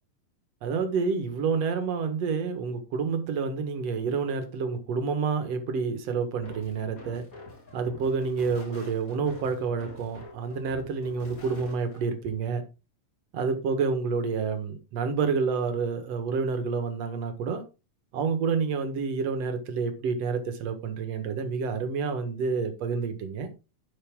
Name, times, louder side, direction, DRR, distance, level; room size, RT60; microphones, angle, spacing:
voice 1, 0.6-7.2 7.7-12.6 13.3-17.6 18.1-23.5, right 5 dB, 60° right, 2.6 m, -29 dB
sound 1, 6.4-12.0, left 1 dB, 30° left, 2.8 m, -46 dB
10.5 x 6.9 x 3.8 m
omnidirectional pair, 3.5 m